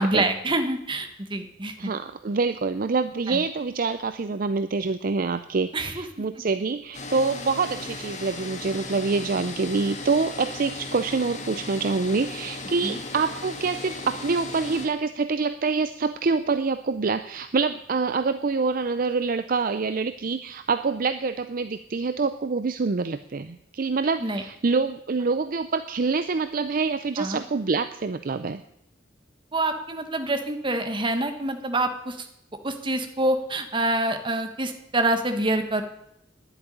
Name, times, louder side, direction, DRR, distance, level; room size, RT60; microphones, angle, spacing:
voice 1, 0.0-1.9 3.3-3.4 5.7-6.0 12.8-13.0 24.2-24.4 27.2-27.4 29.5-32.3 32.6-35.8, right 2 dB, 25° right, 7 dB, 1.3 m, -26 dB
voice 2, 1.8-28.6, right 4 dB, 45° right, 10 dB, 0.5 m, -26 dB
sound 1, 6.9-14.9, left 3 dB, 40° left, 2.0 m, -37 dB
10.5 x 8.1 x 10.0 m, 0.76 s
head